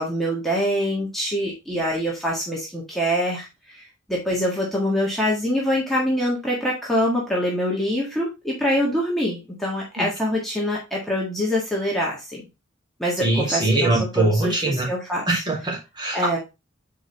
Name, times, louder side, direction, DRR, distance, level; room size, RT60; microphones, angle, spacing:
voice 1, 0.0-12.4 13.0-15.2 16.1-16.4, equal, ahead, -4 dB, 1.5 m, -25 dB
voice 2, 13.2-14.9 15.3-16.4, right 2 dB, 25° right, -1 dB, 2.3 m, -22 dB
6.5 x 4.6 x 3.3 m, 0.25 s
head